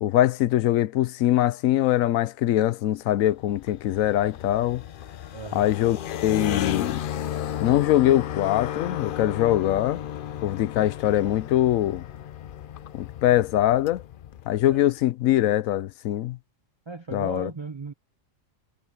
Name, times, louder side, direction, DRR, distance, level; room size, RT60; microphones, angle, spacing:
voice 1, 0.0-4.8 5.5-7.0 7.6-10.0 10.4-12.0 12.9-14.0 14.5-16.4 17.1-17.5, left 13 dB, 85° left, 1.0 m, -22 dB
sound 1, 3.2-14.8, left 10 dB, 55° left, 0.6 m, -34 dB
voice 2, 5.3-5.7 14.7-14.8 16.9-17.9, right 4 dB, 40° right, 0.4 m, -37 dB
omnidirectional pair, 1.4 m